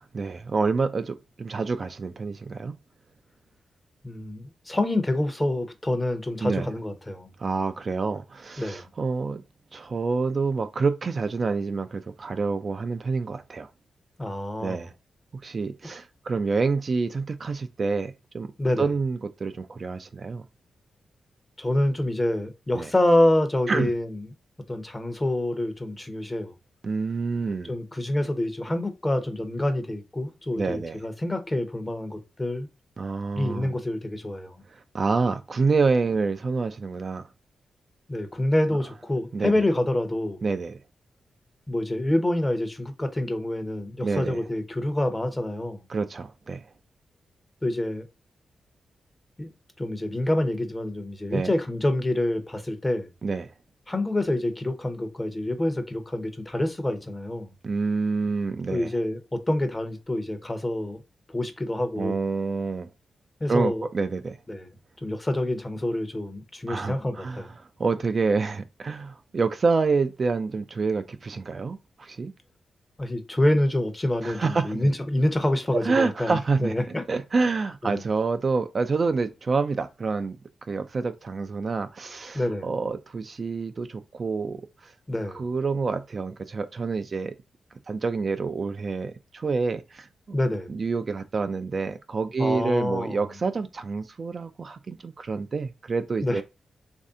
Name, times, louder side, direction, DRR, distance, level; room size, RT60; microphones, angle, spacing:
voice 1, 0.0-2.8 6.4-6.7 7.4-9.4 9.7-13.7 14.6-14.9 15.4-18.5 18.8-20.4 22.8-22.9 23.7-23.9 26.8-27.7 30.6-31.0 33.0-33.8 34.9-37.3 39.3-39.5 40.4-40.8 44.0-44.4 45.9-46.6 51.3-51.5 53.2-53.5 57.6-58.9 62.0-62.9 63.5-64.4 66.7-67.4 67.8-72.3 74.2-74.9 75.8-76.7 77.1-80.4 80.7-84.9 85.3-87.3 87.9-90.1 90.7-96.4, right 4 dB, 45° right, 0.4 m, -27 dB
voice 2, 4.0-7.3 8.6-8.9 14.2-14.9 15.8-15.9 18.6-18.9 21.6-24.3 24.7-26.5 27.7-32.7 33.3-34.6 38.1-40.4 41.7-45.8 47.6-48.1 49.4-49.5 49.8-53.1 53.9-57.5 58.7-61.0 61.3-62.2 63.4-63.9 64.5-64.7 65.0-67.5 73.0-77.0 77.8-78.0 82.3-82.7 85.1-85.4 90.3-90.7 92.4-93.2 96.2-96.4, left 1 dB, 20° left, 0.8 m, -27 dB
3.2 x 2.7 x 3.6 m
cardioid pair, 90°, 0 cm